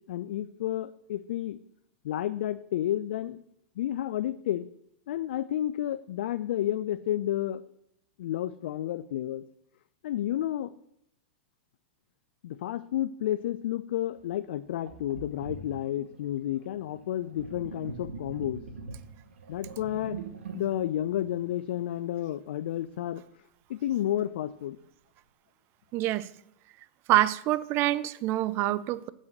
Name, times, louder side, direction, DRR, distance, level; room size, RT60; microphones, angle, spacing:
voice 1, 0.1-1.6 2.0-3.4 3.8-4.7 5.1-7.6 8.2-9.4 10.0-10.7 12.4-18.6 19.5-20.2 20.5-23.2 23.7-24.8, left 12 dB, 70° left, 0.4 m, -31 dB
Sink (filling or washing), 14.2-14.3 14.9-22.2, right 4 dB, 90° right, 1.1 m, -43 dB
voice 2, 25.9-26.3 27.1-29.1, right 15 dB, 40° right, 0.5 m, -26 dB
7.3 x 6.2 x 6.5 m
hypercardioid pair, 120°, 6 cm